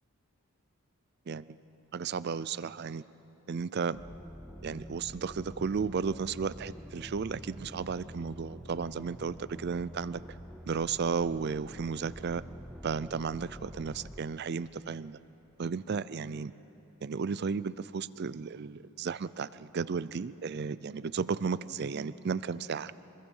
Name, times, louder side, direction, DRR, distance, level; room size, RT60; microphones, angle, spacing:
voice 1, 1.3-1.6 1.9-3.0 3.5-4.0 4.6-10.2 10.7-12.4 12.8-15.2 15.6-16.5 17.0-22.9, right 5 dB, 45° right, 17 dB, 0.4 m, -34 dB
sound 1, 3.9-14.2, equal, ahead, 0.7 m, -47 dB
26.0 x 21.0 x 5.5 m, 3.0 s
head